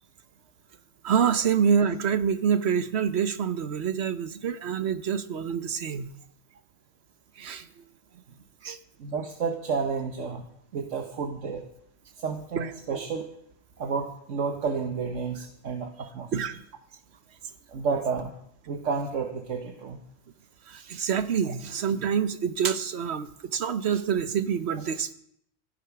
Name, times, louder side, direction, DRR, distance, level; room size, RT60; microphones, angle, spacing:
voice 1, 1.0-6.1 7.4-7.7 8.6-8.8 12.5-12.7 16.3-16.6 20.7-25.1, right 7 dB, 65° right, 11 dB, 1.1 m, -26 dB
voice 2, 9.0-10.4 10.7-11.7 12.2-13.3 13.8-16.3 17.7-18.3 18.7-20.0 21.4-21.5, right 5 dB, 90° right, 4 dB, 1.5 m, -31 dB
14.5 x 10.5 x 5.9 m, 0.71 s
omnidirectional pair, 1.3 m